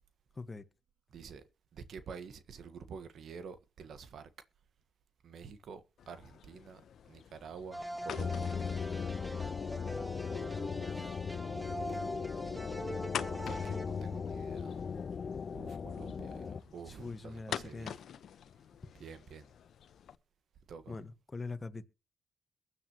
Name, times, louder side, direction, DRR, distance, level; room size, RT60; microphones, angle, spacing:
voice 1, 1.1-1.4 1.7-4.3 5.2-8.6 13.1-14.9 15.5-17.9 18.9-19.5 20.7-21.0, right 6 dB, 65° right, 1.5 m, -49 dB
sound 1, 6.0-20.2, left 9 dB, 65° left, 1.1 m, -47 dB
sound 2, 7.7-14.7, right 1 dB, 10° right, 2.0 m, -43 dB
sound 3, 8.2-16.6, left 6 dB, 50° left, 0.6 m, -38 dB
voice 2, 16.9-17.9 20.9-21.9, left 3 dB, 30° left, 1.5 m, -43 dB
22.5 x 9.9 x 3.1 m
supercardioid pair, 50°, 0 cm